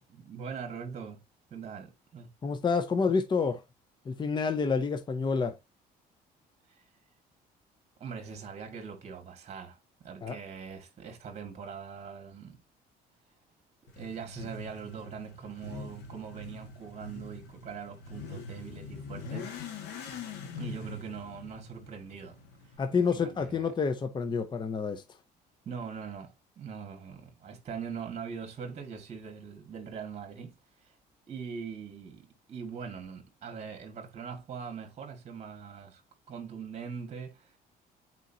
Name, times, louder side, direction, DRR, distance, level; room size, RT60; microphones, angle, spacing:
voice 1, 0.2-1.2 1.5-2.3 6.7-6.8 8.0-12.6 13.8-19.5 20.6-23.7 25.7-30.9 31.3-36.0 36.3-37.6, right 6 dB, 40° right, 1.9 m, -42 dB
voice 2, 2.4-3.6 4.1-5.5 10.2-10.4 22.8-25.0, left 5 dB, 25° left, 0.7 m, -28 dB
Motorcycle / Accelerating revving vroom, 13.9-22.8, left 4 dB, 90° left, 1.8 m, -43 dB
8.2 x 4.5 x 2.8 m
cardioid pair, 110°, 17 cm